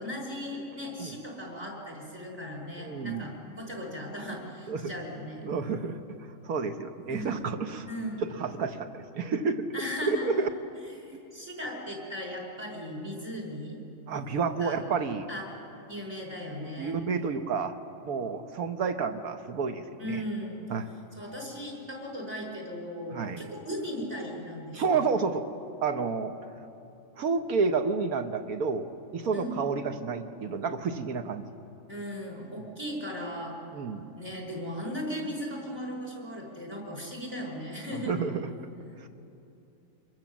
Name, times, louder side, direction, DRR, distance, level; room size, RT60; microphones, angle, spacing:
voice 1, 0.0-5.5 6.0-6.1 7.1-7.4 7.9-8.2 9.7-10.4 11.0-13.8 14.6-14.8 15.3-15.4 15.9-17.0 20.0-20.6 21.2-25.2 29.3-29.7 31.9-33.5 34.2-38.2, equal, 35° right, -1 dB, 5.4 m, -37 dB
voice 2, 2.8-3.3 4.7-4.9 5.4-6.0 6.4-9.6 10.0-10.5 14.1-15.3 16.6-17.7 18.0-20.2 20.7-20.9 23.1-23.4 24.7-25.4 25.8-26.3 27.2-28.9 29.1-31.5 33.7-34.1 38.1-38.5 39.0-39.1, right 5 dB, 55° right, 8 dB, 1.4 m, -30 dB
26.5 x 22.0 x 7.4 m, 2.8 s
omnidirectional pair, 2.1 m